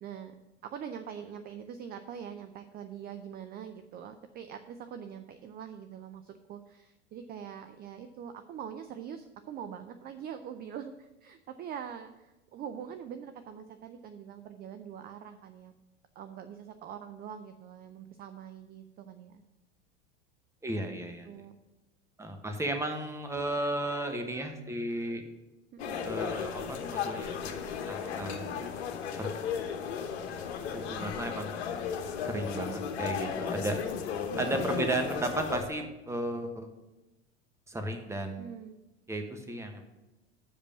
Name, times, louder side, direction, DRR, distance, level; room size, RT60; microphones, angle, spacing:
voice 1, 0.0-0.3 0.6-15.7 16.2-19.4 21.3-21.5 25.9-26.0 34.3-34.6 38.4-38.8, right 8 dB, 30° right, 9 dB, 0.5 m, -43 dB
voice 2, 20.6-21.3 22.2-25.2 26.0-27.6 27.9-28.4 29.2-29.4 30.7-31.5 32.2-33.8 34.4-36.7 37.7-38.4 39.1-39.8, right 1 dB, 10° right, 5 dB, 1.1 m, -34 dB
sound 1, 25.8-35.7, left 7 dB, 70° left, 1.1 m, -35 dB
7.2 x 5.1 x 7.2 m, 1.0 s
hypercardioid pair, 85°, 33 cm